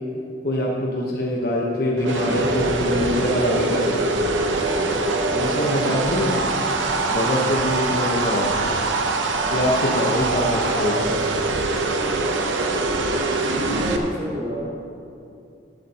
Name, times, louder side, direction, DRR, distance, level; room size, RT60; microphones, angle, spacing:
voice 1, 0.4-4.1 5.3-6.4 7.1-8.7 9.5-11.2, left 1 dB, 55° left, -3 dB, 1.1 m, -24 dB
sound 1, 2.0-14.0, right 2 dB, 90° right, 0.8 m, -23 dB
voice 2, 5.6-6.2 13.7-14.7, right 1 dB, 65° right, -5 dB, 1.9 m, -30 dB
12.0 x 11.5 x 2.9 m, 2.6 s
head